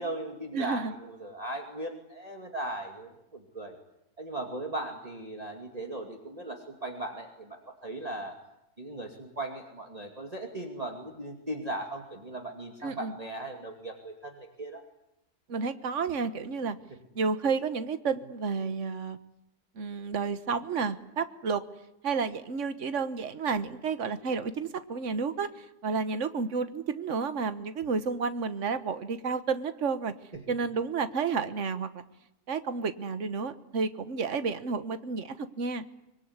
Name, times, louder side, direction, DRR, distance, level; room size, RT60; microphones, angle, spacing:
voice 1, 0.0-3.8 4.2-8.3 8.8-14.8, right 1 dB, 25° right, 2 dB, 2.6 m, -38 dB
voice 2, 0.5-0.9 12.8-13.1 15.5-16.8 17.1-19.2 19.8-21.6 22.0-30.1 30.5-32.0 32.5-35.8, right 5 dB, 50° right, 11 dB, 1.6 m, -31 dB
24.5 x 22.5 x 9.7 m, 0.85 s
omnidirectional pair, 1.6 m